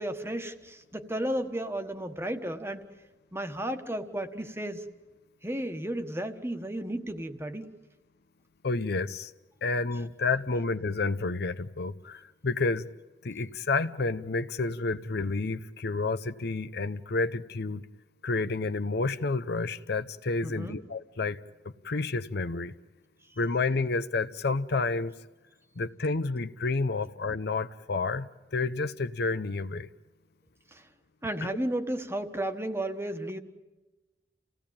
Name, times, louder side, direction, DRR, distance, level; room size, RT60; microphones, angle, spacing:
voice 1, 0.0-2.8 3.3-4.8 5.4-7.7 20.4-20.8 30.7-30.8 31.2-33.4, right 1 dB, 15° right, 7 dB, 1.4 m, -33 dB
voice 2, 8.6-9.3 9.6-12.9 13.2-17.8 18.2-21.4 21.6-22.7 23.4-25.1 25.8-29.9 31.4-31.5, left 3 dB, 60° left, 12 dB, 0.7 m, -30 dB
29.0 x 17.0 x 8.7 m, 1.2 s
head